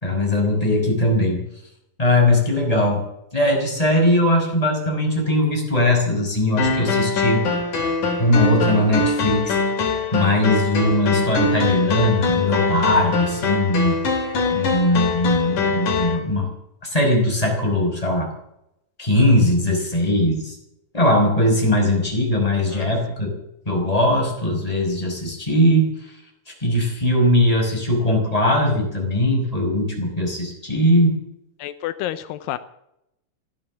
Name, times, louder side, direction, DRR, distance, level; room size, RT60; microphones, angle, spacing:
voice 1, 0.0-1.4 2.0-3.0 3.3-7.5 8.2-9.6 10.1-14.0 14.5-16.5 16.9-18.3 19.0-20.6 20.9-23.3 23.7-25.9 26.6-31.2, left 1 dB, 10° left, -1 dB, 5.3 m, -20 dB
sound 1, 6.6-16.2, left 4 dB, 65° left, 4.5 m, -23 dB
voice 2, 31.6-32.6, left 13 dB, 85° left, 12 dB, 2.4 m, -29 dB
16.0 x 12.0 x 7.3 m, 0.82 s
omnidirectional pair, 3.9 m